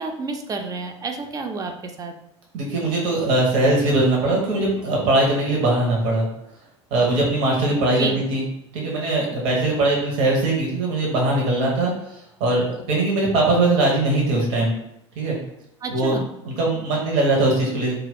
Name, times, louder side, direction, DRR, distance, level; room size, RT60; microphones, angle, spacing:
voice 1, 0.0-2.1 7.9-8.3 15.8-16.3, right 4 dB, 25° right, 4 dB, 0.4 m, -30 dB
voice 2, 2.5-6.3 6.9-8.4 8.7-11.9 12.4-14.7 15.2-15.4 15.9-16.1 16.4-18.0, right 2 dB, 55° right, -2 dB, 0.9 m, -21 dB
2.4 x 2.3 x 3.5 m, 0.79 s
figure-of-eight pair, 70°, 15 cm